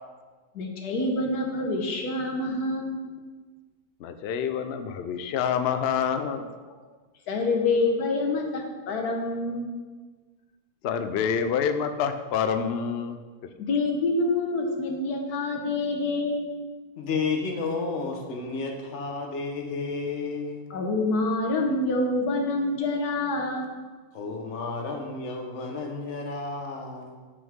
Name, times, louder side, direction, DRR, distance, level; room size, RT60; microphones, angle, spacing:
voice 1, 0.6-3.0 7.3-9.7 13.6-16.6 20.7-23.7, left 2 dB, 85° left, 1 dB, 1.6 m, -27 dB
voice 2, 4.0-6.5 10.8-13.2, left 7 dB, 70° left, 8 dB, 0.6 m, -27 dB
voice 3, 17.0-20.6 24.1-27.1, left 4 dB, 55° left, 2 dB, 1.2 m, -31 dB
8.0 x 6.1 x 3.6 m, 1.4 s
omnidirectional pair, 1.6 m